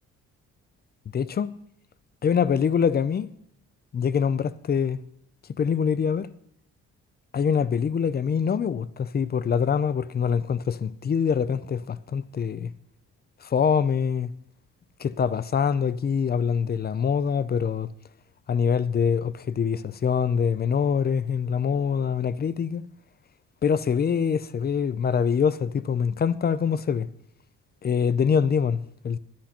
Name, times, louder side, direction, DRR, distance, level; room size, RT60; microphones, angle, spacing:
voice 1, 1.1-1.5 2.2-3.3 3.9-5.0 5.6-6.3 7.3-12.7 13.4-14.3 15.0-17.9 18.5-22.8 23.6-27.1 27.8-29.2, left 7 dB, 35° left, 0.5 m, -24 dB
10.5 x 10.5 x 4.3 m
cardioid pair, 90°, 30 cm